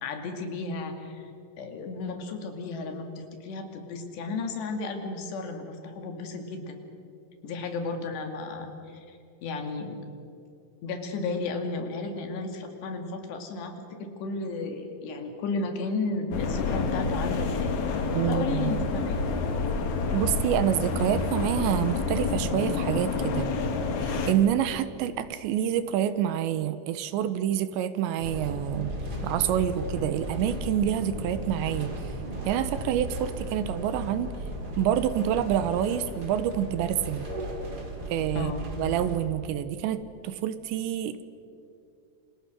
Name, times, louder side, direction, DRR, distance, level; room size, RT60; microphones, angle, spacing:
voice 1, 0.0-1.3 1.6-6.8 7.4-10.0 10.8-19.2 38.3-38.6, left 3 dB, 70° left, 5 dB, 4.4 m, -34 dB
sound 1, 16.3-24.3, left 4 dB, 50° left, 2.5 m, -28 dB
voice 2, 18.1-18.7 20.1-23.5 24.0-29.0 29.2-31.9 32.5-34.3 34.8-37.3 38.1-38.5 38.8-41.2, right 10 dB, 80° right, 12 dB, 3.1 m, -27 dB
sound 2, 28.2-39.2, right 1 dB, 25° right, 3.4 m, -35 dB
29.5 x 26.5 x 6.3 m, 2.6 s
omnidirectional pair, 5.3 m